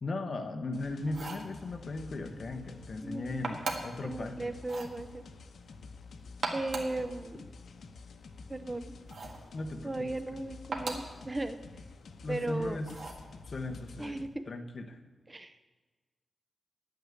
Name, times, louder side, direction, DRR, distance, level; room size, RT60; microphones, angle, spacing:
voice 1, 0.0-4.5 9.5-10.1 12.2-12.9 13.5-14.2 14.5-15.0, left 2 dB, 45° left, 5 dB, 1.1 m, -37 dB
sound 1, 0.7-14.3, left 4 dB, 80° left, 0.9 m, -50 dB
sound 2, 1.1-1.5 3.4-4.0 4.6-5.0 6.3-7.0 9.1-9.4 10.7-11.2 12.8-13.2, right 3 dB, 65° right, 1.7 m, -38 dB
voice 2, 3.0-3.6 4.0-5.2 6.5-7.5 8.5-8.9 9.8-11.6 12.3-12.8 14.0-14.4 15.3-15.6, right 2 dB, 20° right, 10 dB, 0.5 m, -36 dB
11.0 x 8.8 x 8.3 m, 1.3 s
wide cardioid pair, 150°, 0 cm